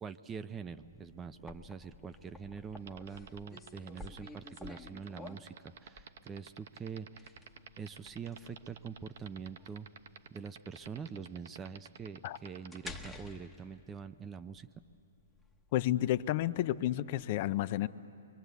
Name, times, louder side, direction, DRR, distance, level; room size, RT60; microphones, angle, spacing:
voice 1, 0.0-7.3 7.8-9.9 10.3-14.7, right 6 dB, 15° right, 12 dB, 0.5 m, -44 dB
sound 1, 0.7-17.2, left 2 dB, 5° left, 1.1 m, -52 dB
sound 2, 2.8-13.1, right 8 dB, 65° right, 0.8 m, -49 dB
voice 2, 15.7-17.9, left 14 dB, 45° left, 13 dB, 0.5 m, -31 dB
28.0 x 23.5 x 8.1 m, 2.7 s
hypercardioid pair, 140°, 0 cm